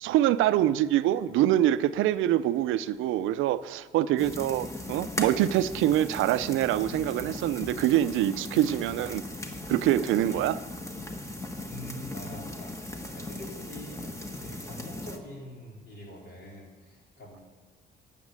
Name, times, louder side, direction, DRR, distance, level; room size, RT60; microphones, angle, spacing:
voice 1, 0.0-9.2 9.7-10.6, right 13 dB, 90° right, 0.5 m, -25 dB
sound 1, 4.2-15.2, left 1 dB, 15° left, 1.4 m, -38 dB
voice 2, 11.7-17.4, left 1 dB, 55° left, 4.3 m, -45 dB
9.7 x 7.3 x 9.3 m
cardioid pair, 90°, 20 cm